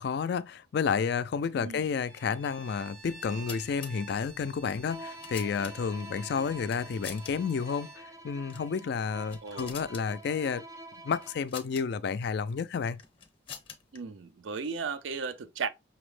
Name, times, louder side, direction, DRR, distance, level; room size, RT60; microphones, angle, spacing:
voice 1, 0.0-10.6 11.0-13.0, left 6 dB, 55° left, 0.3 m, -31 dB
Bowed string instrument, 2.0-8.1, right 3 dB, 90° right, 0.8 m, -51 dB
sound 1, 3.1-3.9 4.8-6.0 6.6-7.3 7.6-7.7 8.4-8.7 9.1-10.1 11.2-11.8 12.8-14.0, left 7 dB, 25° left, 0.7 m, -45 dB
Bowed string instrument 2, 4.8-11.5, right 1 dB, 15° right, 0.5 m, -47 dB
voice 2, 9.4-9.8 13.9-15.7, right 5 dB, 70° right, 0.4 m, -35 dB
5.8 x 2.1 x 3.1 m
head